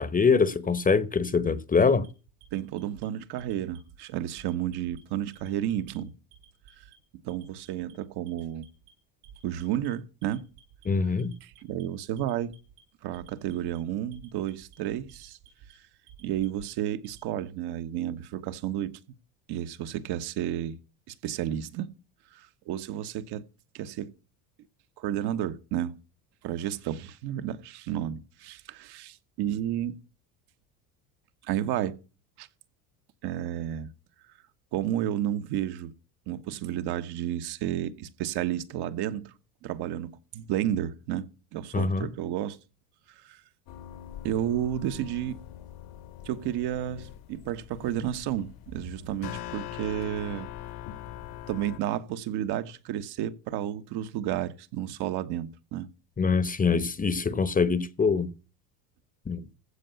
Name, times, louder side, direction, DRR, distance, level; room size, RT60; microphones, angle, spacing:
voice 1, 0.0-2.1 10.9-11.3 41.7-42.1 56.2-58.3 59.3-59.5, left 5 dB, 20° left, 1.0 m, -24 dB
Alarm, 1.7-3.0 3.4-4.0 4.4-5.0 5.3-6.0 6.3-7.0 7.3-7.9 8.3-8.9 9.2-9.9 10.2-10.9 11.2-11.8 12.2-12.8 13.1-13.8 14.1-14.8 15.1-15.7 16.1-17.3, right 9 dB, 80° right, 7.4 m, -53 dB
voice 2, 2.5-6.1 7.2-8.6 9.4-10.4 11.4-12.5 13.0-15.4 16.2-19.0 19.5-20.8 21.1-21.9 22.3-23.4 23.7-24.1 25.0-26.0 26.4-29.9 31.5-32.0 32.4-32.5 33.2-33.9 34.7-35.9 36.3-39.3 39.6-42.6 43.2-43.4 44.2-45.4 46.2-50.5 51.5-55.9, right 11 dB, 60° right, 1.4 m, -32 dB
sound 1, 43.7-51.8, left 12 dB, 50° left, 1.3 m, -42 dB
15.0 x 5.4 x 8.0 m
supercardioid pair, 90°, 45 cm